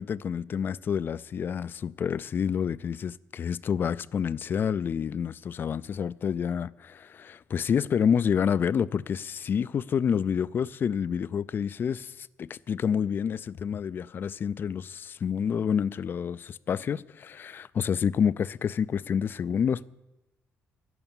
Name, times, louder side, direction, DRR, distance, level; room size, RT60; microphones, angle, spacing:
voice 1, 0.0-19.9, left 7 dB, 45° left, 0.4 m, -28 dB
11.0 x 11.0 x 7.2 m
cardioid pair, 110°, 5 cm